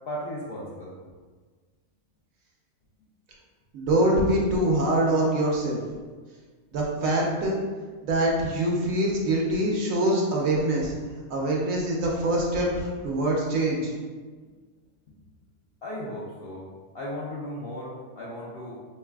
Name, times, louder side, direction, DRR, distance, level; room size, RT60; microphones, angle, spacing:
voice 1, 0.1-0.9 15.8-16.6 16.9-18.8, equal, 60° left, -6 dB, 0.6 m, -35 dB
voice 2, 3.7-5.8 6.7-7.6 8.0-10.9 11.3-13.9, right 1 dB, 70° right, -2 dB, 1.0 m, -24 dB
3.9 x 3.2 x 2.3 m, 1.5 s
omnidirectional pair, 1.5 m